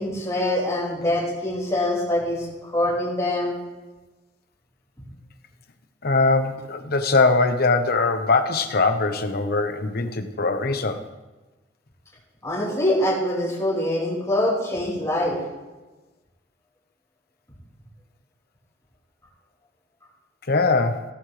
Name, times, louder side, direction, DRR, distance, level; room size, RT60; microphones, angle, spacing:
voice 1, 0.0-3.5 12.4-15.4, left 1 dB, 15° left, -5 dB, 5.6 m, -24 dB
voice 2, 6.0-11.0 20.5-21.0, left 3 dB, 55° left, 7 dB, 1.1 m, -21 dB
16.5 x 14.0 x 3.4 m, 1.2 s
head